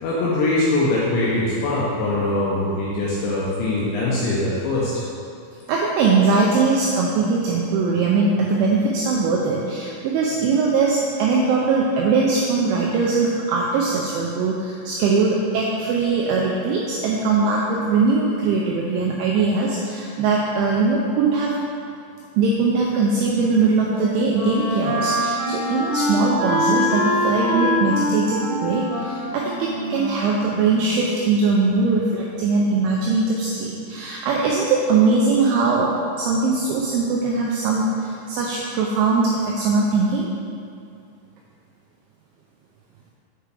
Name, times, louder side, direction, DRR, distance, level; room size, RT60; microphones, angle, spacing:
voice 1, 0.0-5.0, left 2 dB, 80° left, -6 dB, 2.7 m, -22 dB
voice 2, 5.7-21.5 22.4-35.9 36.2-40.3, right 4 dB, 90° right, -3 dB, 2.7 m, -21 dB
Wind instrument woodwind instrument, 23.3-31.1, equal, 65° right, 3.1 m, -25 dB
7.7 x 4.7 x 3.4 m, 2.5 s
omnidirectional pair, 6.0 m